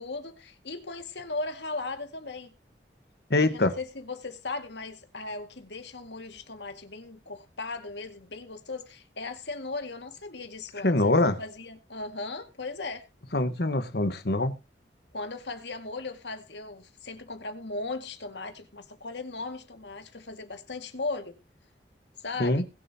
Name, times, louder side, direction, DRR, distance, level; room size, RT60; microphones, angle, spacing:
voice 1, 0.0-2.5 3.5-11.1 11.4-13.1 15.1-21.4 22.2-22.6, left 3 dB, 80° left, 2.2 m, -37 dB
voice 2, 3.3-3.7 10.8-11.4 13.3-14.5 22.4-22.6, left 2 dB, 65° left, 1.4 m, -24 dB
21.0 x 7.0 x 2.9 m
head